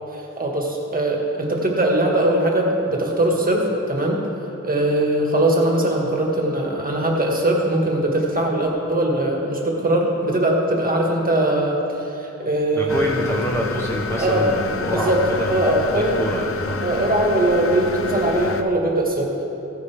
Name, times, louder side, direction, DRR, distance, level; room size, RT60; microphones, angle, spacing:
voice 1, 0.1-4.2 4.6-13.1 14.1-14.4 14.9-15.2 15.5-16.2 16.8-19.4, right 1 dB, 30° right, -1 dB, 1.7 m, -21 dB
voice 2, 12.7-15.6 15.9-16.8, equal, 10° left, -4 dB, 1.0 m, -26 dB
sound 1, 12.9-18.6, left 5 dB, 50° left, 0.6 m, -29 dB
15.5 x 9.4 x 3.5 m, 3.0 s
wide cardioid pair, 120°, 30 cm